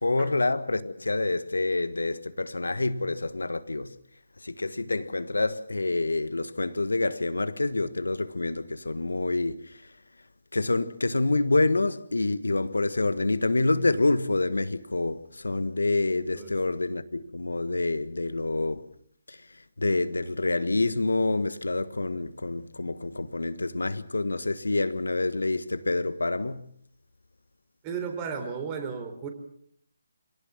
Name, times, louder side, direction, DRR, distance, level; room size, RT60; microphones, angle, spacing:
voice 1, 0.0-3.9 4.4-9.8 10.5-18.9 19.3-26.7, left 2 dB, 80° left, 1.5 m, -27 dB
voice 2, 27.8-29.3, right 6 dB, 20° right, 4.1 m, -34 dB
26.5 x 17.5 x 7.3 m
figure-of-eight pair, 150°, 0 cm